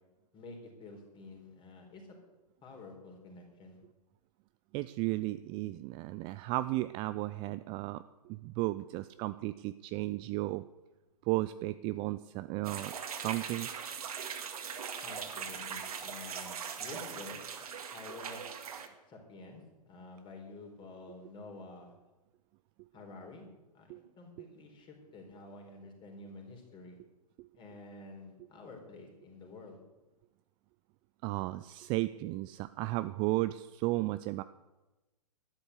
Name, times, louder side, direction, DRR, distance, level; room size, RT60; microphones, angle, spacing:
voice 1, 0.3-2.2 2.6-3.8 15.0-17.4 17.9-18.6 19.1-21.9 22.9-23.5 23.7-27.0 27.5-29.8, left 3 dB, 25° left, 2 dB, 4.1 m, -49 dB
voice 2, 4.7-10.6 11.2-13.7 23.9-24.0 27.4-27.5 31.2-34.4, right 19 dB, 25° right, 13 dB, 0.4 m, -34 dB
sound 1, 12.6-18.9, right 7 dB, 65° right, 2.0 m, -40 dB
12.5 x 10.5 x 8.2 m, 1.1 s
figure-of-eight pair, 115°, 20 cm